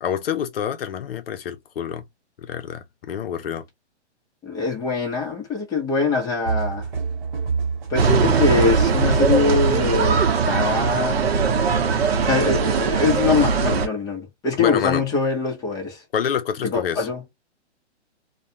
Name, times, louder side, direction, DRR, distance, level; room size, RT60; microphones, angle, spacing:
voice 1, 0.0-2.0 2.4-3.6 14.6-15.0 16.1-17.1, left 8 dB, 55° left, 0.7 m, -27 dB
voice 2, 4.4-6.9 7.9-11.3 12.2-16.0 16.6-17.2, left 4 dB, 10° left, 0.8 m, -23 dB
sound 1, 6.4-10.7, right 5 dB, 45° right, 1.1 m, -26 dB
sound 2, 8.0-13.9, right 5 dB, 60° right, 0.8 m, -20 dB
2.4 x 2.3 x 2.8 m
hypercardioid pair, 140°, 34 cm